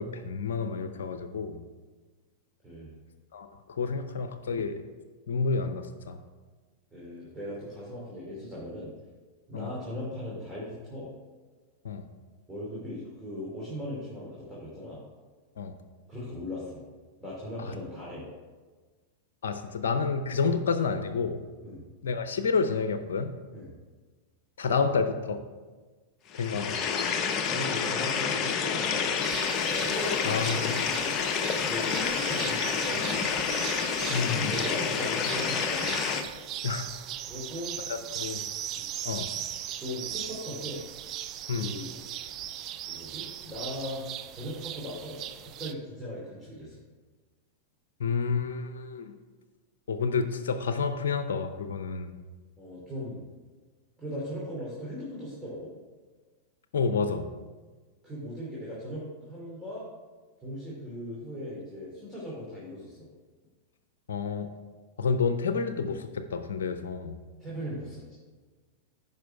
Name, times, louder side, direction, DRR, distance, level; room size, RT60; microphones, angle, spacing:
voice 1, 0.0-1.6 3.3-4.9 5.3-6.2 9.5-9.7 11.8-12.0 15.6-15.7 17.6-17.7 19.4-21.4 22.0-23.3 24.6-25.4 26.3-26.8 30.2-30.7 34.1-34.5 36.6-36.9 37.9-38.4 39.0-39.3 41.5-41.7 48.0-49.1 49.9-52.1 56.7-57.3 64.1-64.5 65.0-67.1, left 5 dB, 75° left, 9 dB, 0.6 m, -29 dB
voice 2, 6.9-8.9 9.5-11.1 12.5-15.0 16.1-16.8 17.2-18.2 21.6-21.8 23.5-23.7 26.6-26.9 27.5-29.3 29.6-31.1 31.6-33.4 34.1-35.9 37.3-37.8 38.7-38.9 39.8-40.8 41.4-41.9 42.9-44.0 44.3-46.8 52.6-53.2 54.0-55.7 58.0-59.8 60.4-63.1 67.4-68.1, left 1 dB, 5° right, -7 dB, 2.7 m, -38 dB
sound 1, 26.3-36.2, left 6 dB, 35° left, 0.9 m, -29 dB
sound 2, 29.2-45.7, right 11 dB, 40° right, 0.5 m, -39 dB
9.4 x 5.5 x 4.6 m, 1.4 s
hypercardioid pair, 105°, 0 cm